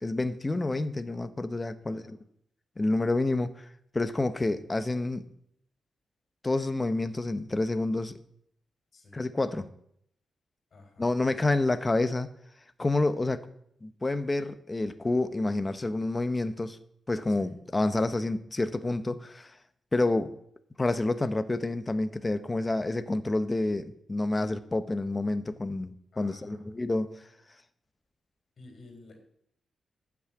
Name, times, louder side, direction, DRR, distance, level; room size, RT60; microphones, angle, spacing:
voice 1, 0.0-2.2 2.8-3.7 3.9-5.3 6.4-8.1 9.1-9.7 11.0-12.3 12.8-13.5 13.8-16.8 17.1-19.6 19.9-20.3 20.8-27.1, left 2 dB, 20° left, 0.8 m, -28 dB
voice 2, 1.8-2.2 8.9-9.2 10.7-11.5 17.3-17.5 26.1-26.6 28.6-29.2, left 2 dB, 50° left, 3.3 m, -53 dB
12.5 x 6.1 x 8.4 m
cardioid pair, 110°, 0 cm